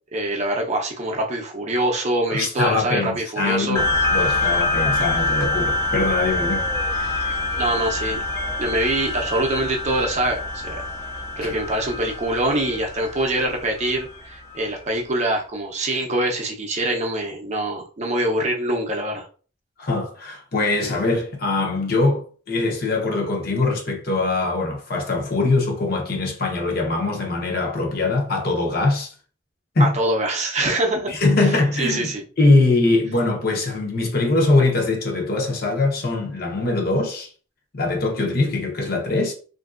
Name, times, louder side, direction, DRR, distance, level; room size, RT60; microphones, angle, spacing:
voice 1, 0.1-3.8 7.6-8.2 8.6-10.8 11.4-19.3 29.8-31.2 31.8-32.2, right 1 dB, 35° right, 0.6 m, -24 dB
voice 2, 2.3-7.4 11.4-11.5 15.9-16.0 19.8-29.1 29.7-29.9 31.1-32.1 32.4-37.3 37.7-39.3, left 2 dB, 50° left, 0.7 m, -22 dB
sound 1, 3.8-14.6, left 2 dB, 15° left, 0.4 m, -25 dB
3.0 x 2.6 x 2.4 m
head